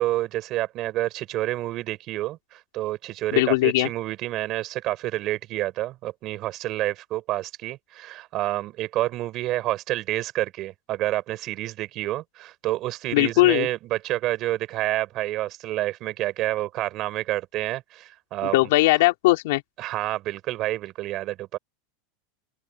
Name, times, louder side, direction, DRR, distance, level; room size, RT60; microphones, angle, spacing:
voice 1, 0.0-18.6 19.8-21.6, right 15 dB, 30° right, 4.4 m, -28 dB
voice 2, 3.3-3.9 13.1-13.7 18.4-19.6, left 20 dB, 55° left, 4.0 m, -19 dB
open air
supercardioid pair, 180°, 0 cm